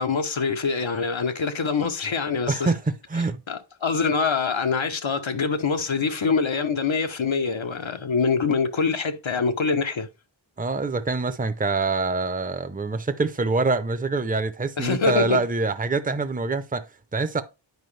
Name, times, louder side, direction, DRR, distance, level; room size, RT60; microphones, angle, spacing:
voice 1, 0.0-2.7 3.5-10.1 14.8-15.4, left 5 dB, 80° left, 1.0 m, -24 dB
voice 2, 2.5-3.4 10.6-17.4, right 3 dB, 20° right, 0.6 m, -25 dB
9.4 x 4.9 x 3.2 m
wide cardioid pair, 50°, 46 cm